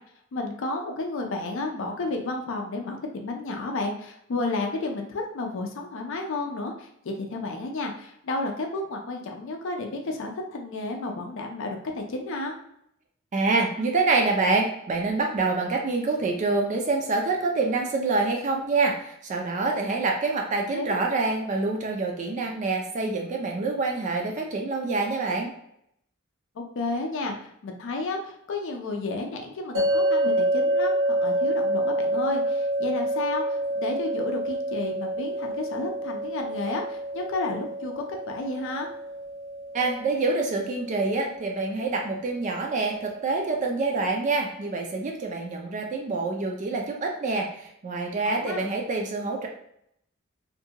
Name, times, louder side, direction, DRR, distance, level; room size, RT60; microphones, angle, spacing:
voice 1, 0.3-12.5 20.7-20.9 26.6-38.9 48.3-48.7, left 2 dB, 65° left, 3 dB, 0.4 m, -32 dB
voice 2, 13.3-25.5 39.7-49.5, right 3 dB, 35° right, 1 dB, 0.4 m, -26 dB
sound 1, 29.7-42.9, right 1 dB, 65° right, 0.8 m, -28 dB
2.5 x 2.2 x 2.8 m, 0.75 s
head